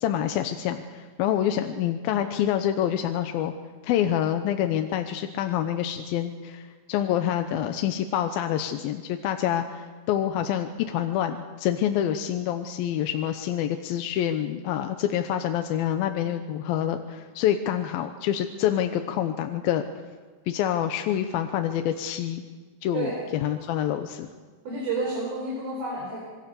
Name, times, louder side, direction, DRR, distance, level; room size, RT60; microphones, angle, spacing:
voice 1, 0.0-3.5 3.8-19.8 20.5-22.4 22.8-24.3, left 10 dB, 80° left, 7 dB, 2.7 m, -27 dB
voice 2, 24.6-26.3, right 3 dB, 85° right, -3 dB, 6.7 m, -30 dB
26.5 x 22.5 x 6.9 m, 1.4 s
omnidirectional pair, 4.2 m